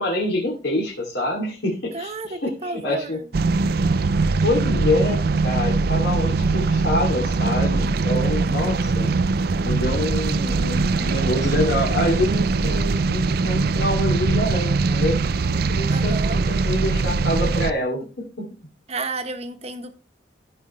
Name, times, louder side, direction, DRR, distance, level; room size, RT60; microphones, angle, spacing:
voice 1, 0.0-3.2 4.4-9.1 9.6-15.2 15.5-16.2 16.5-18.4, left 1 dB, 70° left, 2.6 m, -26 dB
voice 2, 1.9-3.2 15.9-16.4 18.9-20.0, right 3 dB, 35° right, 1.1 m, -32 dB
sound 1, 3.3-17.7, right 3 dB, 55° right, 0.5 m, -21 dB
15.5 x 5.3 x 3.1 m
head